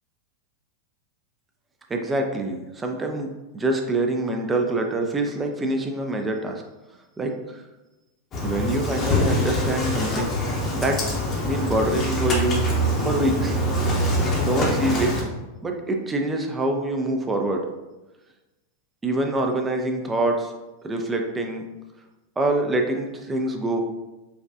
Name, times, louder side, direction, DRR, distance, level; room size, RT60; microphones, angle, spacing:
voice 1, 1.9-3.3 3.5-6.6 7.2-7.6 8.4-10.4 10.7-11.0 11.4-12.7 13.0-13.6 14.4-15.1 15.6-17.7 19.0-20.5 20.8-21.6 22.4-23.8, right 2 dB, 15° right, 3 dB, 0.3 m, -25 dB
Engine starting, 8.3-15.2, equal, 30° left, 0.7 m, -24 dB
4.7 x 2.3 x 2.4 m, 1.1 s
figure-of-eight pair, 90°, 0 cm